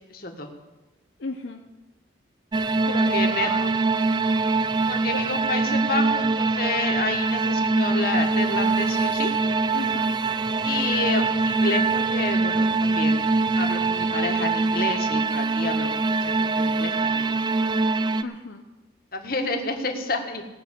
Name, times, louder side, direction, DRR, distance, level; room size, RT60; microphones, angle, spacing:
voice 1, 0.1-0.5 3.0-3.5 4.9-9.3 10.6-13.3 13.5-17.3 17.6-17.7 19.1-20.4, left 3 dB, 50° left, 3 dB, 1.7 m, -30 dB
voice 2, 1.2-1.6 2.9-3.7 5.1-5.2 9.7-10.1 18.2-18.6, left 3 dB, 75° left, 2 dB, 0.8 m, -34 dB
sound 1, 2.5-18.2, right 3 dB, 25° right, 0.4 m, -23 dB
18.0 x 6.2 x 8.3 m, 1.1 s
head